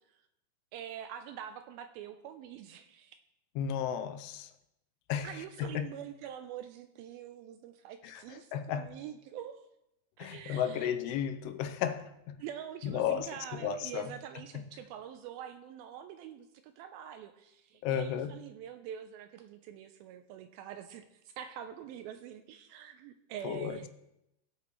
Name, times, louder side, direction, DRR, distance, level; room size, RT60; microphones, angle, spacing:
voice 1, 0.7-3.2 5.2-9.6 10.2-11.0 12.4-21.1 21.4-23.9, right 10 dB, 85° right, 8 dB, 2.2 m, -45 dB
voice 2, 3.6-4.5 5.1-5.9 8.0-8.9 10.2-12.4 12.8-14.2 14.5-14.7 17.8-18.3 23.4-23.8, left 9 dB, 85° left, 9 dB, 2.7 m, -34 dB
16.0 x 8.5 x 3.1 m, 0.85 s
omnidirectional pair, 4.6 m